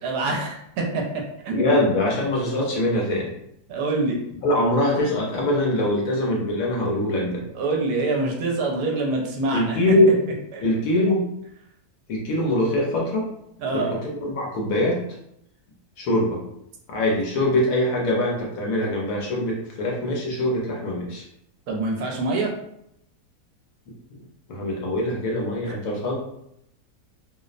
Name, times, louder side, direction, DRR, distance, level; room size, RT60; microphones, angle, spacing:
voice 1, 0.0-1.8 3.7-4.2 7.5-9.8 10.5-10.6 13.6-13.9 21.7-22.5 25.7-25.8, right 2 dB, 75° right, 0 dB, 1.0 m, -25 dB
voice 2, 1.5-3.3 4.4-7.4 9.5-10.2 10.6-11.2 12.1-13.2 13.7-13.9 14.2-15.0 16.0-16.4 16.9-21.2 24.5-26.2, left 1 dB, 70° left, -2 dB, 0.9 m, -23 dB
2.7 x 2.0 x 2.4 m, 0.77 s
omnidirectional pair, 1.7 m